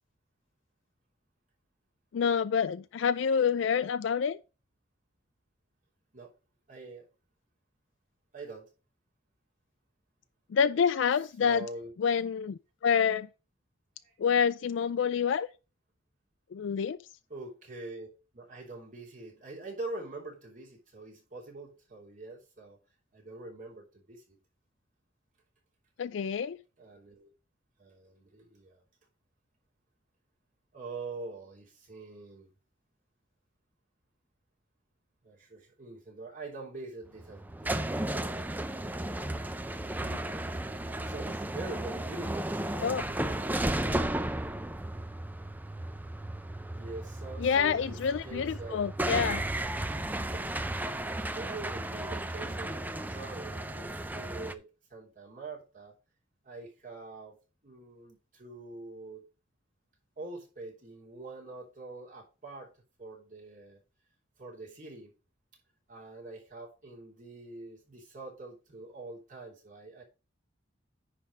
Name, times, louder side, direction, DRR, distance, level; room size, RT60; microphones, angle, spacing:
voice 1, 2.1-4.4 10.5-11.7 12.0-13.3 14.2-15.5 16.5-17.0 26.0-26.6 40.0-40.2 42.8-43.0 47.4-49.4, left 7 dB, 65° left, 0.4 m, -27 dB
voice 2, 6.7-7.1 8.3-8.7 11.4-11.9 14.0-14.1 17.3-18.1 18.3-22.8 23.1-24.4 26.8-27.3 27.8-28.8 30.7-32.5 35.2-38.5 41.0-43.8 46.7-48.0 48.2-48.8 49.1-49.7 50.3-50.5 50.9-51.0 51.3-55.9 56.4-57.4 57.6-59.3 60.2-62.7 63.0-63.8 64.4-65.1 65.9-70.0, right 3 dB, 40° right, 3.1 m, -44 dB
sound 1, 37.0-54.5, right 1 dB, 10° right, 0.5 m, -34 dB
9.9 x 3.5 x 6.0 m
head